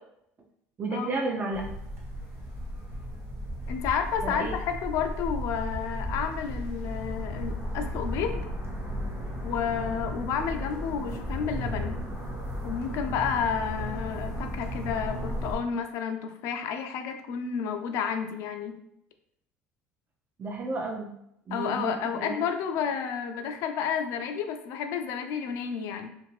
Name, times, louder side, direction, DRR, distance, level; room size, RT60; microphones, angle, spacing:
voice 1, 0.8-1.6 4.2-4.6 20.4-21.1 21.5-22.4, right 2 dB, 30° right, 1 dB, 0.4 m, -32 dB
sound 1, 1.5-15.6, equal, 45° right, 1.0 m, -34 dB
voice 2, 3.7-8.4 9.4-12.0 12.6-18.8 21.5-26.1, left 7 dB, 70° left, 6 dB, 0.3 m, -31 dB
2.5 x 2.5 x 3.1 m, 0.77 s
supercardioid pair, 100°, 5 cm